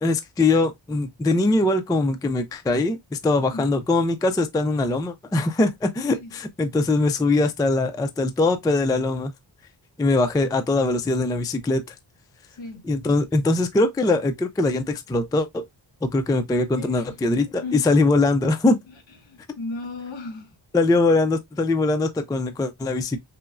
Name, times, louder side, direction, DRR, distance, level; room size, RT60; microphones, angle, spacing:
voice 1, 0.0-9.3 10.0-11.9 12.8-15.6 16.0-18.8 20.7-23.2, left 2 dB, 10° left, 0.3 m, -22 dB
voice 2, 12.5-12.9 16.8-17.1 17.6-17.9 18.9-19.0 19.2-20.5, left 3 dB, 70° left, 1.5 m, -35 dB
5.5 x 2.0 x 2.4 m
wide cardioid pair, 135°, 46 cm